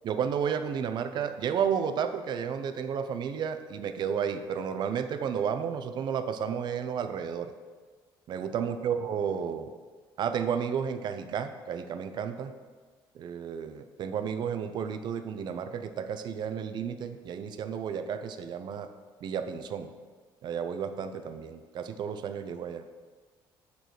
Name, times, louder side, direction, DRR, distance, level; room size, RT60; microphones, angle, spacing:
voice 1, 0.0-7.5 8.3-9.7 10.2-12.5 13.1-18.9 19.2-19.9 20.4-22.8, right 7 dB, 55° right, 9 dB, 0.6 m, -32 dB
7.0 x 4.8 x 5.9 m, 1.5 s
cardioid pair, 115°, 9 cm